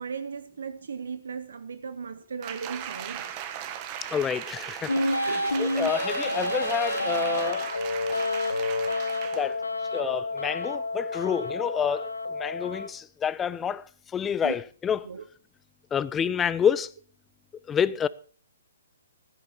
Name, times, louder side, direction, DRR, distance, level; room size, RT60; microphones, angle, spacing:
voice 1, 0.0-3.3 5.3-5.9 14.4-14.5 15.0-15.2, right 6 dB, 70° right, 0.8 m, -37 dB
Applause, 2.4-9.6 10.0-10.1, right 10 dB, 35° right, 1.4 m, -38 dB
voice 2, 4.1-7.6 9.3-9.6 9.9-13.8 14.1-15.1 15.9-16.9 17.7-18.1, left 8 dB, 15° left, 0.5 m, -28 dB
sound 1, 4.9-12.9, left 2 dB, 90° left, 1.1 m, -29 dB
13.5 x 10.5 x 4.4 m
figure-of-eight pair, 130°, 0 cm